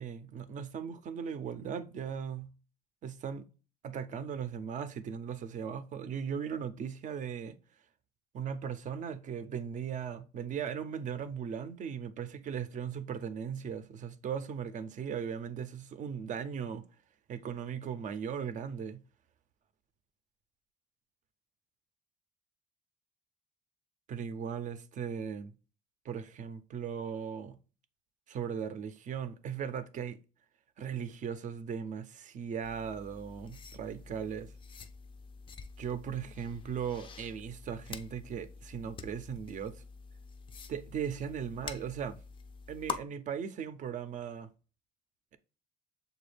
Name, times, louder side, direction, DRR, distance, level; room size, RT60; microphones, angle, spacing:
voice 1, 0.0-2.5 3.0-3.5 3.8-7.6 8.3-16.9 17.3-19.0 24.1-25.5 26.0-27.6 28.3-30.2 30.8-34.5 35.8-39.8 40.7-42.2 42.7-44.5, right 7 dB, 50° right, 0.5 m, -38 dB
sound 1, 32.6-43.0, left 5 dB, 30° left, 0.4 m, -46 dB
6.8 x 2.3 x 3.3 m
cardioid pair, 110°, 17 cm